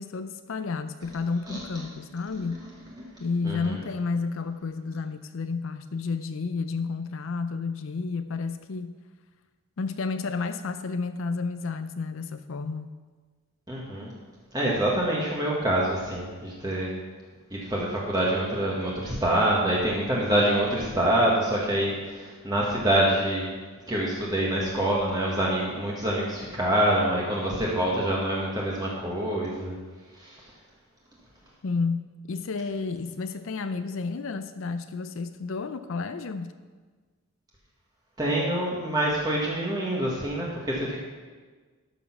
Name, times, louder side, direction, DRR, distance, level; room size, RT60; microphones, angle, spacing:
voice 1, 0.0-2.6 3.2-8.9 9.8-12.9 31.6-36.5, left 4 dB, 65° left, 10 dB, 0.5 m, -31 dB
voice 2, 3.4-3.8 13.7-14.1 14.5-16.9 17.5-23.5 23.9-29.7 30.1-30.4 38.2-41.0, right 1 dB, 20° right, -4 dB, 1.4 m, -26 dB
12.0 x 6.3 x 5.9 m, 1.4 s
head